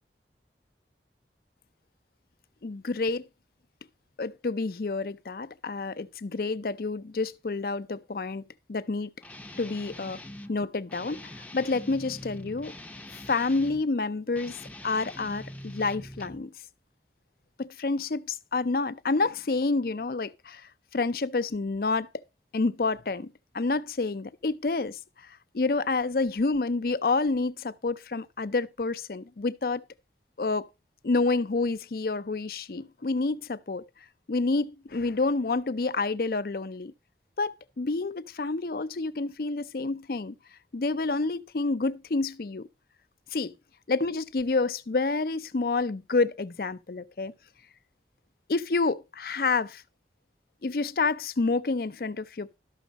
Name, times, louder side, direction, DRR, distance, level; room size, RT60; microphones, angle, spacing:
voice 1, 2.6-3.3 4.2-8.4 8.7-9.1 9.6-10.2 10.5-12.7 13.1-14.6 14.8-16.5 17.6-22.1 22.5-29.8 30.4-30.7 31.0-33.8 34.3-36.9 37.4-40.3 40.7-42.7 43.3-43.5 43.9-47.3 48.5-49.8 50.6-52.5, left 3 dB, 55° left, 0.5 m, -28 dB
Guitar, 9.2-10.5 10.9-13.8 14.3-16.5, left 1 dB, 10° left, 0.6 m, -43 dB
12.5 x 6.3 x 4.0 m
head